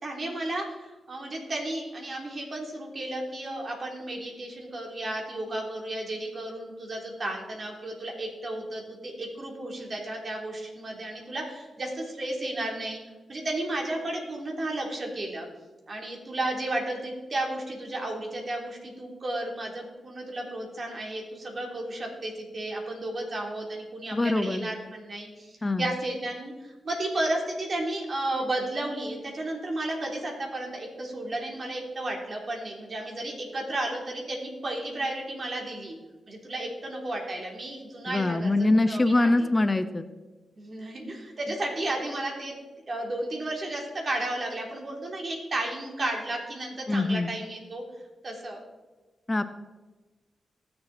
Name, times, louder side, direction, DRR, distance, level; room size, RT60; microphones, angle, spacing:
voice 1, 0.0-13.0 13.3-15.5 15.9-35.9 36.3-39.5 40.6-42.6 42.9-47.8 48.2-48.6, right 1 dB, 50° right, 0 dB, 3.6 m, -33 dB
voice 2, 24.1-24.7 25.6-25.9 38.1-40.0 46.9-47.3 49.3-49.4, left 2 dB, 30° left, 11 dB, 0.7 m, -24 dB
19.5 x 6.6 x 4.4 m, 1.2 s
cardioid pair, 55°, 0 cm